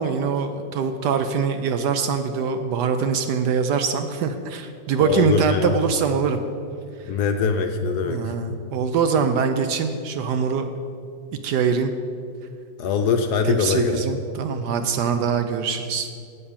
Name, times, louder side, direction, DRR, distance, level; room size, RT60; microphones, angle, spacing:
voice 1, 0.0-6.4 8.0-10.7 11.4-11.9 13.4-16.1, right 6 dB, 70° right, 8 dB, 1.0 m, -23 dB
voice 2, 5.0-5.8 7.1-8.2 12.8-14.0, left 5 dB, 70° left, 6 dB, 1.0 m, -22 dB
8.7 x 6.8 x 7.1 m, 2.4 s
omnidirectional pair, 2.1 m